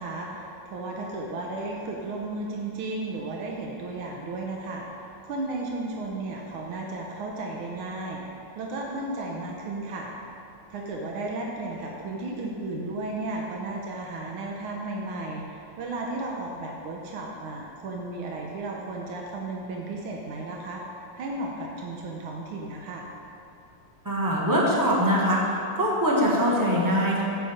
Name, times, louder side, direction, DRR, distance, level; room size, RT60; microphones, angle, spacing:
voice 1, 0.0-10.1 10.7-23.1, right 2 dB, 85° right, -1 dB, 1.8 m, -34 dB
voice 2, 24.0-27.2, equal, 10° right, -4 dB, 1.2 m, -23 dB
8.3 x 8.1 x 5.0 m, 2.7 s
omnidirectional pair, 2.3 m